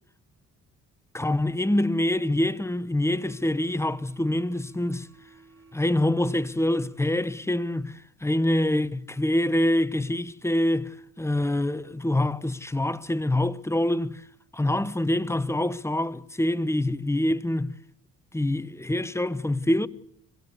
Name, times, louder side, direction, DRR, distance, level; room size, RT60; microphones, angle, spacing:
voice 1, 1.1-5.1 5.7-14.2 14.5-17.7 18.3-19.9, left 1 dB, 10° left, 0.9 m, -25 dB
sound 1, 3.0-7.8, right 4 dB, 45° right, 3.5 m, -54 dB
25.5 x 17.0 x 8.2 m
cardioid pair, 90°, 30 cm